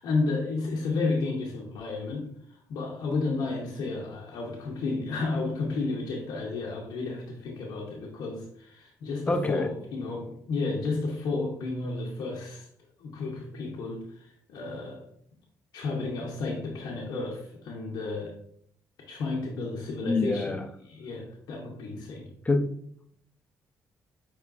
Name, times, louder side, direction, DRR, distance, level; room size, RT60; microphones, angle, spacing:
voice 1, 0.0-12.7 13.0-15.0 15.7-18.4 19.1-20.6 20.9-22.3, left 3 dB, 80° left, -2 dB, 0.8 m, -32 dB
voice 2, 9.3-9.7 20.0-20.7 22.4-22.8, left 2 dB, 20° left, 6 dB, 0.6 m, -26 dB
5.6 x 3.0 x 2.5 m, 0.66 s
supercardioid pair, 70°, 7 cm